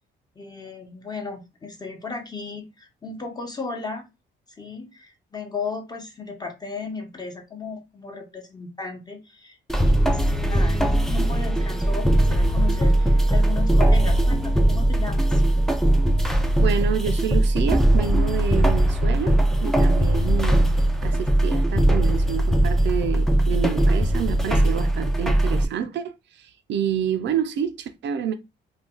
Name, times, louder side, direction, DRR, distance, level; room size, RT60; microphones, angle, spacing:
voice 1, 0.4-4.0 4.5-9.6 9.8-15.4, left 4 dB, 20° left, 0.9 m, -35 dB
sound 1, 9.7-25.6, right 1 dB, ahead, 0.4 m, -20 dB
voice 2, 16.2-20.7 21.0-28.3, right 8 dB, 65° right, 0.4 m, -28 dB
2.5 x 2.3 x 3.6 m
cardioid pair, 90°, 20 cm